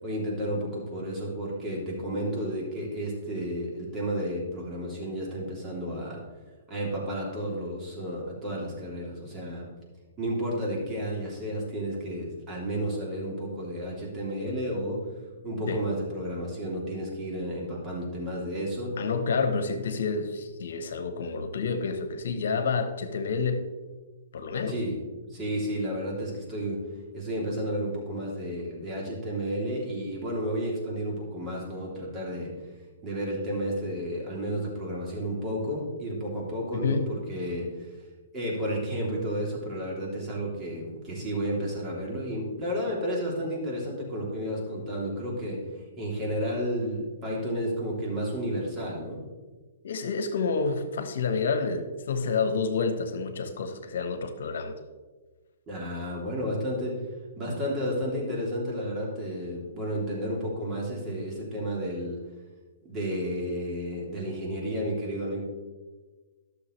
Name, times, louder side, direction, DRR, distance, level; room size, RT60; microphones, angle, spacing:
voice 1, 0.0-6.2 6.7-9.7 10.2-15.0 15.4-18.9 24.7-25.0 25.3-26.8 27.1-32.5 33.0-37.7 38.3-45.6 46.0-49.2 55.7-56.9 57.4-62.2 62.8-65.4, equal, 20° right, -4 dB, 3.0 m, -32 dB
voice 2, 19.0-23.6 24.3-24.8 36.7-37.1 49.8-54.7, left 4 dB, 70° left, 8 dB, 1.1 m, -29 dB
12.0 x 6.6 x 3.2 m, 1.3 s
hypercardioid pair, 125°, 0 cm